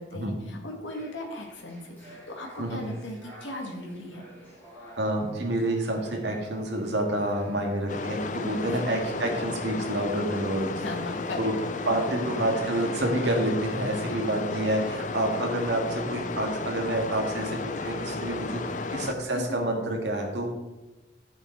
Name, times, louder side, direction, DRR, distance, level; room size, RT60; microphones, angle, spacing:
voice 1, 0.0-4.2 8.4-8.8 10.7-11.5 13.9-14.5 19.3-19.6, left 1 dB, 90° left, 1 dB, 1.7 m, -38 dB
sound 1, 0.8-14.5, right 1 dB, 10° left, 3.9 m, -50 dB
voice 2, 5.0-10.7 11.4-11.5 11.9-20.5, right 1 dB, 70° right, 2 dB, 1.9 m, -28 dB
sound 2, 7.9-19.1, left 3 dB, 40° left, 0.5 m, -33 dB
9.9 x 7.4 x 4.5 m, 1.1 s
head